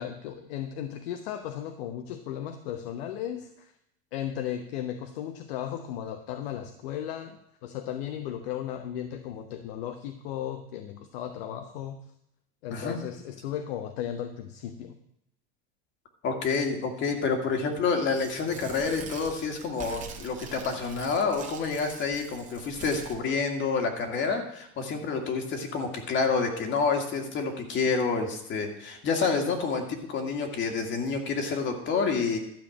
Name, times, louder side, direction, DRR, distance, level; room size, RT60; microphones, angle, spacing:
voice 1, 0.0-3.7 4.1-12.0 12.6-15.0, left 10 dB, 80° left, 7 dB, 1.0 m, -36 dB
voice 2, 16.2-32.4, left 4 dB, 40° left, 3 dB, 2.0 m, -28 dB
Tearing, 18.0-23.2, right 5 dB, 25° right, 1.7 m, -44 dB
12.5 x 5.1 x 8.4 m, 0.77 s
supercardioid pair, 135°, 30 cm